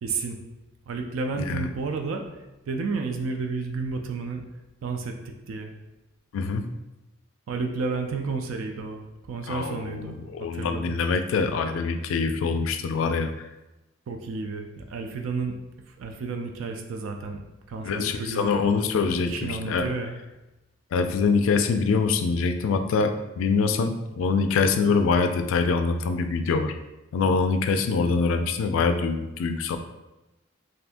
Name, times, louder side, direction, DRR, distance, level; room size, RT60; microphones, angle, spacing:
voice 1, 0.0-0.4 0.9-2.2 2.7-4.4 4.8-5.7 7.5-10.2 10.5-11.0 14.1-15.5 16.0-17.4 17.7-18.6 19.2-20.1, right 4 dB, 75° right, 4 dB, 0.3 m, -31 dB
voice 2, 1.4-1.7 6.3-6.6 9.5-13.3 17.8-19.9 20.9-26.7 27.1-29.8, left 4 dB, 75° left, 8 dB, 0.3 m, -24 dB
2.6 x 2.5 x 3.4 m, 1.0 s
head